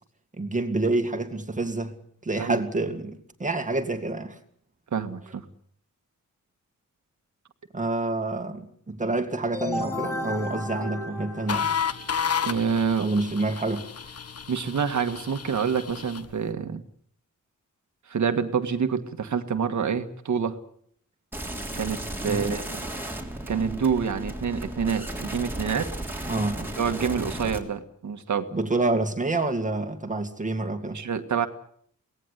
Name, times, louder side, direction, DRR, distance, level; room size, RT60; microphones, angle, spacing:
voice 1, 0.4-2.0 2.2-4.4 7.7-11.7 13.0-13.9 22.2-22.5 26.3-26.7 28.5-31.0, right 2 dB, 25° right, 2.1 m, -28 dB
voice 2, 4.9-5.4 12.4-13.1 14.5-16.8 18.1-20.6 21.8-22.7 23.5-25.9 26.8-28.5 30.9-31.5, right 6 dB, 65° right, 1.8 m, -27 dB
sound 1, 9.5-12.2, left 2 dB, 10° left, 6.2 m, -33 dB
sound 2, 11.5-16.3, left 7 dB, 50° left, 1.2 m, -31 dB
sound 3, 21.3-27.6, right 1 dB, 5° right, 3.4 m, -34 dB
23.5 x 18.0 x 8.2 m
wide cardioid pair, 150°, 31 cm